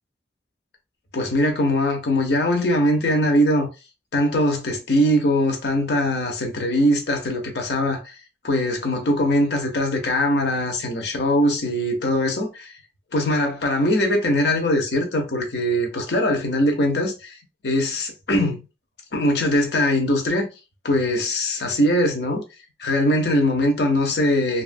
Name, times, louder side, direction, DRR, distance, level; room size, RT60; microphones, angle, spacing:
voice 1, 1.1-3.7 4.1-8.2 8.4-12.7 13.1-17.4 17.6-18.6 19.1-20.5 20.8-22.4 22.8-24.6, left 1 dB, 70° left, 0.7 m, -21 dB
2.7 x 2.4 x 2.5 m
head